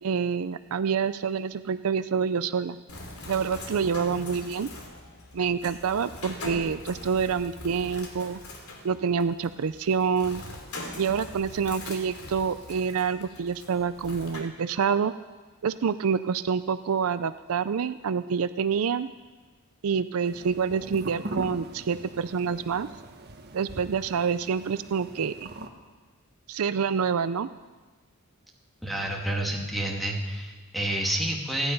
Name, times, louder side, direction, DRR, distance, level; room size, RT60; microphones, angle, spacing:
voice 1, 0.0-2.8 3.3-4.7 5.3-8.4 8.8-10.4 11.0-15.1 15.6-19.1 19.8-22.9 23.5-25.5 26.5-27.5, right 6 dB, 75° right, 13 dB, 0.4 m, -27 dB
Bird, 2.9-14.4, left 1 dB, 80° left, 3.0 m, -42 dB
sound 1, 20.2-25.7, right 1 dB, 45° right, 1.3 m, -41 dB
voice 2, 28.8-31.7, right 1 dB, ahead, 0 dB, 2.2 m, -29 dB
26.5 x 10.0 x 5.4 m, 1.3 s
head